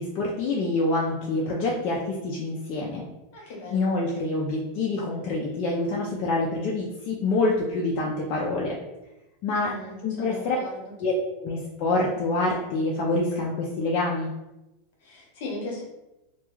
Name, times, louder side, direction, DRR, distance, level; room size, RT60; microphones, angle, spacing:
voice 1, 0.0-3.1 3.4-8.8 9.4-9.7 10.0-10.6 11.0-11.1 11.4-14.3, left 2 dB, 45° left, -3 dB, 0.4 m, -26 dB
voice 2, 3.3-4.0 9.5-11.0 15.0-15.8, left 2 dB, 65° left, -1 dB, 0.9 m, -38 dB
2.3 x 2.2 x 3.0 m, 0.97 s
supercardioid pair, 150°, 0 cm